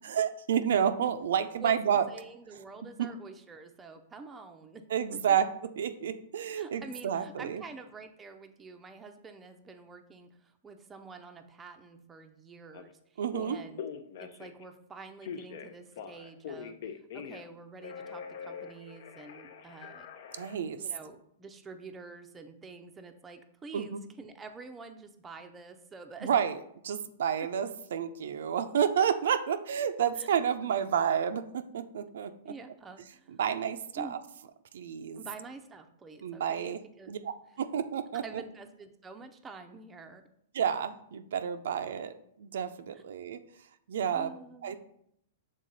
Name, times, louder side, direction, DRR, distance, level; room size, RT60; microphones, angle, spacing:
voice 1, 0.1-2.1 3.0-3.1 4.9-7.6 13.2-13.6 20.3-20.8 23.7-24.0 26.2-26.5 26.8-32.5 33.3-34.2 34.7-35.2 36.2-36.8 37.1-38.4 40.5-43.4 43.9-44.3 44.6-44.8, right 8 dB, 75° right, 9 dB, 0.4 m, -30 dB
voice 2, 2.1-4.8 5.3-5.4 6.5-13.8 14.2-16.8 17.1-20.1 20.7-26.3 30.2-30.3 32.5-33.4 34.0-34.2 35.2-37.1 38.1-40.2 42.9-43.3 44.1-44.7, right 3 dB, 15° right, 5 dB, 0.5 m, -47 dB
Telephone, 12.7-12.8 13.3-14.6 15.2-17.5 17.8-20.6, left 7 dB, 60° left, 0.6 m, -43 dB
6.5 x 3.6 x 4.0 m, 0.72 s
hypercardioid pair, 150°, 0 cm